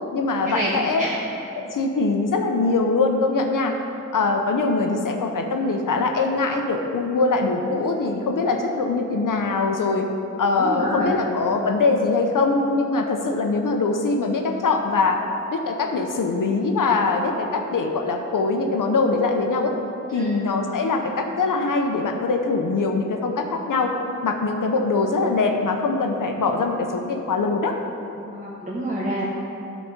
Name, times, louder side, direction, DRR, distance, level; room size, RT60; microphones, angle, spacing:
voice 1, 0.1-1.0 1.5-3.7 4.1-10.0 10.4-15.2 15.5-19.7 20.1-23.9 24.2-27.7, left 3 dB, 80° left, 3 dB, 0.8 m, -22 dB
voice 2, 10.6-11.2 20.1-20.3 28.2-29.2, right 1 dB, 25° right, -5 dB, 1.2 m, -28 dB
11.0 x 4.2 x 5.8 m, 2.8 s
wide cardioid pair, 70°, 31 cm